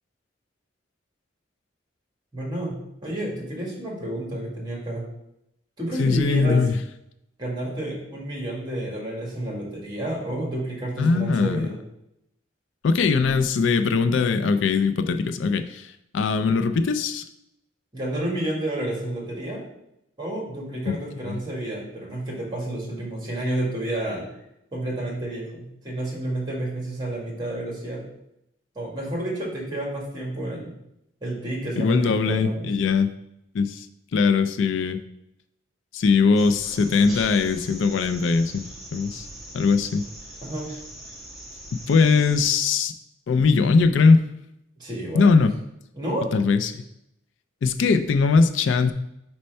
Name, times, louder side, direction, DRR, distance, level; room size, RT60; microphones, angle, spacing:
voice 1, 2.3-2.8 3.0-5.1 5.8-6.6 7.4-11.8 17.9-19.6 20.2-24.3 24.7-28.0 28.8-30.7 31.2-32.7 40.4-40.7 44.8-45.3 45.9-46.3, right 1 dB, 20° right, -3 dB, 1.9 m, -30 dB
voice 2, 6.0-6.8 11.0-11.7 12.8-17.2 20.9-21.0 21.3-21.4 31.8-33.1 33.5-33.9 34.1-35.0 35.9-38.6 38.9-39.3 39.5-40.0 41.7-42.9 43.3-44.2 45.1-45.5 46.3-46.8 47.6-48.9, left 4 dB, 70° left, 10 dB, 0.4 m, -20 dB
sound 1, 36.4-42.5, right 1 dB, ahead, 1.3 m, -41 dB
4.3 x 4.3 x 5.3 m, 0.82 s
head